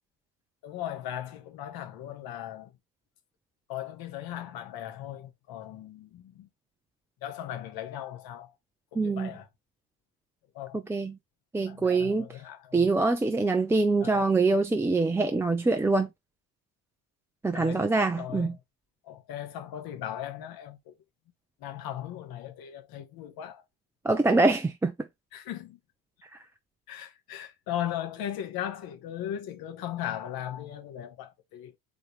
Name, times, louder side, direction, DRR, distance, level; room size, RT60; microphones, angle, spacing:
voice 1, 0.6-2.7 3.7-6.5 7.2-8.5 8.9-9.5 10.5-10.8 11.6-12.9 14.0-14.3 17.5-17.9 18.2-18.5 19.1-20.9 21.6-23.6 25.3-25.8 26.9-31.7, left 11 dB, 50° left, 1.3 m, -38 dB
voice 2, 9.0-9.3 10.7-11.2 11.5-12.3 12.7-16.1 17.4-18.5 24.0-25.1, right 3 dB, 5° right, 0.4 m, -24 dB
4.2 x 3.5 x 3.1 m
figure-of-eight pair, 60°, 46 cm